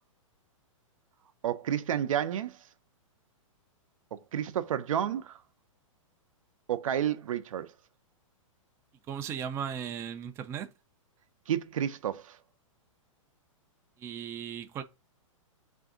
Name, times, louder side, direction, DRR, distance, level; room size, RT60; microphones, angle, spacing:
voice 1, 1.4-2.6 4.1-5.4 6.7-7.7 11.5-12.4, right 10 dB, 80° right, 0.5 m, -31 dB
voice 2, 9.1-10.7 14.0-14.8, right 8 dB, 15° right, 0.3 m, -36 dB
3.4 x 2.6 x 3.5 m
hypercardioid pair, 135°, 17 cm